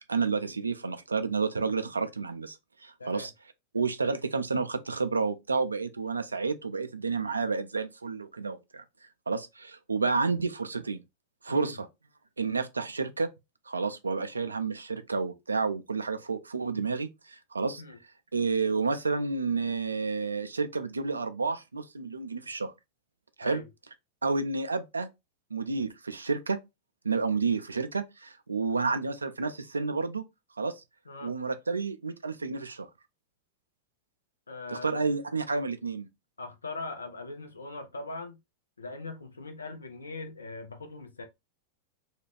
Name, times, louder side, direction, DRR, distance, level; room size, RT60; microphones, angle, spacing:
voice 1, 0.1-2.6 2.8-3.3 3.7-8.8 9.3-11.0 11.4-11.9 12.4-13.3 13.7-17.8 18.3-22.7 23.4-23.6 24.2-25.1 25.5-26.6 27.0-30.2 30.6-30.8 31.2-32.9 34.7-36.1, right 4 dB, 75° right, 0.3 m, -30 dB
voice 2, 34.5-35.0 36.4-38.4 38.8-41.2, left 3 dB, 75° left, 0.6 m, -40 dB
2.4 x 2.2 x 3.2 m
figure-of-eight pair, 90°, 0 cm